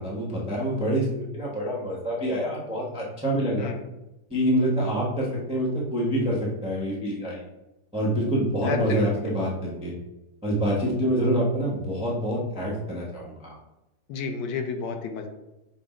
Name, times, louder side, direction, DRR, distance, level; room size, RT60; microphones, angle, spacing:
voice 1, 0.0-3.7 4.3-7.4 7.9-9.9 10.4-13.5, equal, 10° right, -4 dB, 0.3 m, -26 dB
voice 2, 8.6-9.1 14.1-15.3, left 5 dB, 70° left, 5 dB, 1.2 m, -30 dB
5.0 x 2.1 x 4.8 m, 0.96 s
omnidirectional pair, 2.0 m